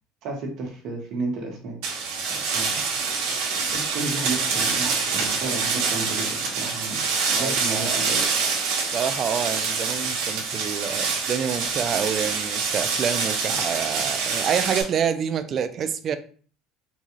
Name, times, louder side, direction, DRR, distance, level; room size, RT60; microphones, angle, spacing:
voice 1, 0.2-1.8 2.3-2.7 3.7-7.0 7.3-8.3, right 3 dB, 60° right, 1.2 m, -32 dB
sound 1, 1.8-14.8, right 5 dB, 85° right, 1.0 m, -26 dB
voice 2, 7.3-7.9 8.9-16.2, right 7 dB, 40° right, 0.4 m, -27 dB
3.9 x 2.4 x 3.0 m
cardioid pair, 125°, 0 cm